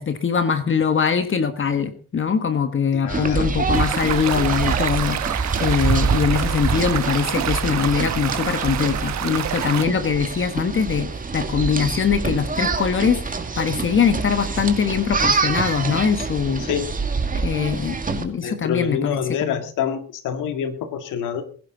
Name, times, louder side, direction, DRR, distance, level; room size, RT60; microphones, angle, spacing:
voice 1, 0.0-11.1 11.3-16.6 17.3-19.6, left 6 dB, 40° left, 10 dB, 1.5 m, -22 dB
voice 2, 2.9-3.5 16.6-16.9 18.4-21.4, left 8 dB, 90° left, 8 dB, 2.2 m, -26 dB
sound 1, 3.1-18.2, right 4 dB, 25° right, 2.3 m, -26 dB
sound 2, 3.7-9.9, right 11 dB, 65° right, 1.0 m, -28 dB
20.0 x 11.0 x 4.0 m, 0.41 s
cardioid pair, 90°, 30 cm